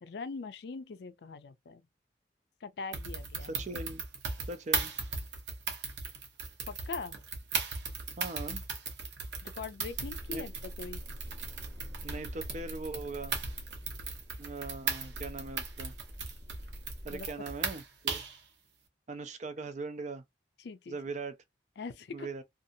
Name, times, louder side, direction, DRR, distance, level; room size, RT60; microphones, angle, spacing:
voice 1, 0.0-1.8 2.6-3.6 6.7-7.2 9.4-11.0 17.1-17.3 20.6-21.0 21.8-22.3, left 4 dB, 65° left, 0.4 m, -42 dB
sound 1, 2.9-18.4, right 5 dB, 75° right, 0.8 m, -37 dB
voice 2, 3.4-4.1 4.5-4.9 8.2-8.6 10.3-10.4 12.0-13.4 14.4-15.9 17.0-18.2 19.1-20.2 20.9-21.4 22.1-22.4, right 3 dB, 40° right, 0.5 m, -40 dB
sound 2, 9.9-17.3, equal, 15° right, 0.8 m, -46 dB
2.7 x 2.4 x 2.5 m
head